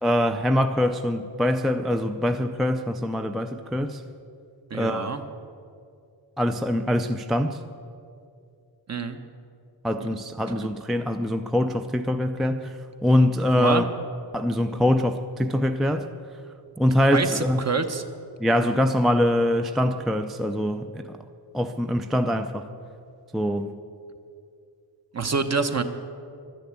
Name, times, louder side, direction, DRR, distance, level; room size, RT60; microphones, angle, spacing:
voice 1, 0.0-4.0 4.7-5.1 6.4-7.6 9.8-12.7 13.0-13.8 14.3-16.1 16.8-17.6 18.4-21.2 21.5-22.7 23.3-23.7, left 1 dB, ahead, 7 dB, 0.4 m, -23 dB
voice 2, 4.7-5.2 8.9-9.2 13.5-13.9 17.1-18.0 25.1-25.8, right 4 dB, 35° right, 8 dB, 1.0 m, -26 dB
12.5 x 10.5 x 9.4 m, 2.4 s
wide cardioid pair, 150°, 43 cm